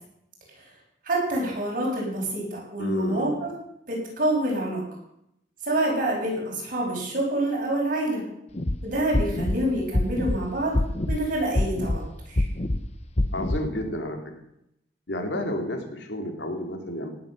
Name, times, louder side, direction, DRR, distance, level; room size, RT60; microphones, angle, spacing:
voice 1, 1.0-3.5 3.9-4.8 5.6-8.2 8.8-10.8 11.1-12.4, right 1 dB, 50° right, -2 dB, 6.5 m, -27 dB
voice 2, 2.8-3.4 13.3-14.3 15.1-17.1, left 1 dB, 80° left, 4 dB, 2.7 m, -31 dB
sound 1, 8.5-8.8 9.1-9.6 9.9-10.4 10.7-11.2 11.6-12.0 12.4-12.8 13.2-13.6, left 1 dB, 40° left, 1.1 m, -24 dB
17.5 x 8.7 x 6.6 m, 0.79 s
head